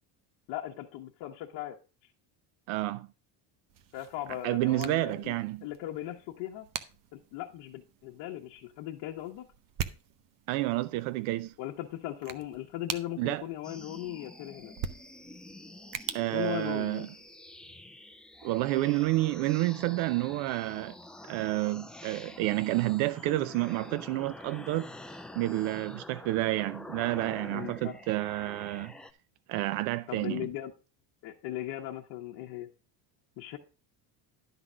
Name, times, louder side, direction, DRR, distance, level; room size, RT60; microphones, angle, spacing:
voice 1, 0.5-1.8 3.9-6.7 7.1-9.5 11.6-14.7 16.2-17.1 27.5-28.0 30.1-30.7 31.2-32.7 33.4-33.6, left 13 dB, 70° left, 1.2 m, -38 dB
voice 2, 2.7-3.1 4.4-5.7 10.5-11.5 13.2-13.4 16.1-17.1 18.4-20.9 21.3-24.9 25.4-28.9 29.5-30.5, right 18 dB, 85° right, 0.6 m, -29 dB
sound 1, 3.7-17.4, right 8 dB, 45° right, 0.8 m, -44 dB
sound 2, 13.6-29.1, left 1 dB, ahead, 0.4 m, -47 dB
11.5 x 4.0 x 6.1 m
cardioid pair, 145°, 45 cm